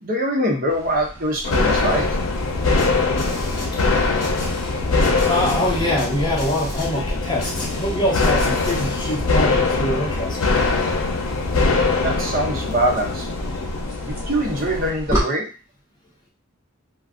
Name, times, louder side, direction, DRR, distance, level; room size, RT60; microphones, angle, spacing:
voice 1, 0.0-2.1 12.0-13.3 14.0-15.5, right 1 dB, 45° right, -1 dB, 0.8 m, -23 dB
sound 1, 0.7-15.2, equal, 15° right, 0.8 m, -35 dB
sound 2, 1.4-14.9, left 3 dB, 85° left, 0.6 m, -22 dB
sound 3, 2.8-9.2, left 1 dB, 45° left, 1.3 m, -35 dB
voice 2, 5.3-10.7, left 1 dB, 20° left, -2 dB, 0.8 m, -24 dB
2.4 x 2.3 x 3.6 m, 0.33 s
head